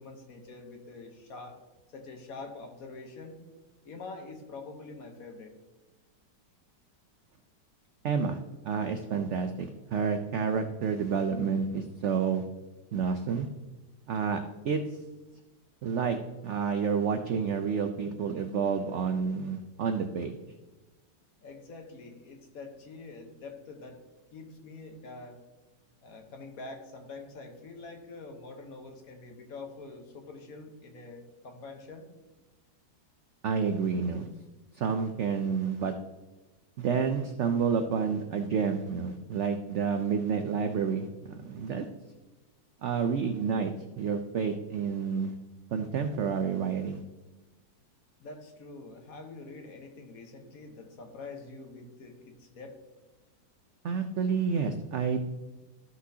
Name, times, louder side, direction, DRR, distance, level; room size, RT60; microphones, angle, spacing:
voice 1, 0.0-1.6 1.9-3.4 3.8-5.6 21.4-24.0 24.3-25.4 26.0-32.1 48.2-52.8, left 3 dB, 55° left, 4 dB, 1.4 m, -45 dB
voice 2, 8.0-8.4 8.7-12.4 12.9-13.5 14.1-14.4 14.6-14.8 15.8-16.2 16.4-20.3 33.4-34.3 34.7-35.9 36.8-41.1 41.4-41.9 42.8-45.3 45.7-47.0 53.8-55.2, right 6 dB, 80° right, 7 dB, 0.6 m, -29 dB
14.0 x 6.0 x 2.8 m, 1.2 s
omnidirectional pair, 1.9 m